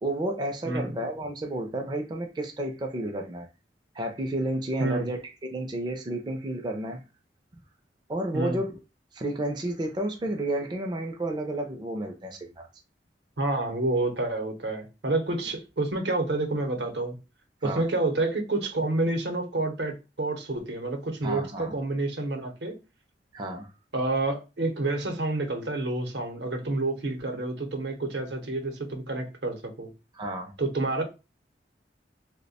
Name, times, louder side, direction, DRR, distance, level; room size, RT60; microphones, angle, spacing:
voice 1, 0.0-3.5 3.9-5.2 5.5-7.0 8.1-8.7 9.1-12.7 17.6-17.8 21.2-21.8 23.3-23.7 30.1-30.5, right 1 dB, 25° right, 0.4 m, -31 dB
voice 2, 4.8-5.1 8.3-8.6 13.4-17.2 17.6-22.8 23.9-29.9 30.6-31.0, right 2 dB, 75° right, 0.7 m, -29 dB
2.8 x 2.1 x 4.0 m
head